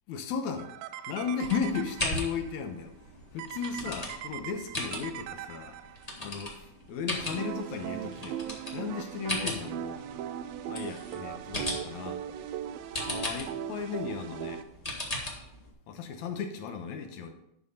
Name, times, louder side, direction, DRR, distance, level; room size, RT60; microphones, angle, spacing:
voice 1, 0.1-0.8 1.1-2.9 3.3-5.8 6.2-8.4 8.7-10.0 10.7-12.2 13.1-14.6 15.9-17.3, left 6 dB, 75° left, 2.1 m, -35 dB
sound 1, 0.6-2.5 3.4-6.2 7.1-14.6, right 10 dB, 80° right, 1.5 m, -39 dB
sound 2, 1.4-15.7, left 1 dB, 25° left, 0.9 m, -39 dB
11.0 x 4.8 x 5.3 m
omnidirectional pair, 3.5 m